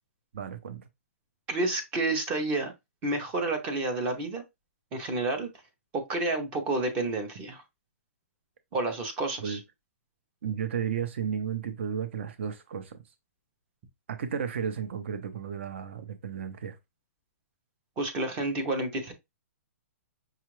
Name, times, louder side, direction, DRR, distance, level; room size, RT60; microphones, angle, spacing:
voice 1, 0.3-0.8 9.4-9.6 10.4-13.0 14.1-16.8, right 7 dB, 50° right, 0.7 m, -33 dB
voice 2, 1.5-2.7 3.0-4.4 4.9-5.5 5.9-7.6 8.7-9.6 18.0-19.1, right 2 dB, 15° right, 0.6 m, -30 dB
5.8 x 2.4 x 3.1 m
hypercardioid pair, 170°, 8 cm